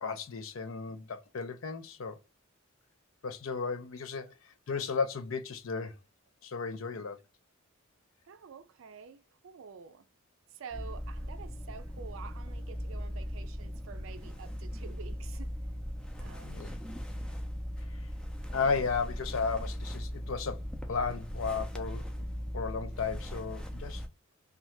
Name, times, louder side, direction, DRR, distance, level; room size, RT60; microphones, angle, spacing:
voice 1, 0.0-2.2 3.2-6.0 6.4-7.2 16.4-16.7 17.9-18.1 18.5-20.6 20.9-22.3 22.5-24.0, left 5 dB, 75° left, 0.5 m, -34 dB
voice 2, 8.3-10.1 10.5-15.6 16.2-16.7, right 6 dB, 70° right, 0.4 m, -49 dB
sound 1, 10.7-24.1, equal, 5° left, 0.4 m, -39 dB
2.7 x 2.3 x 3.1 m
head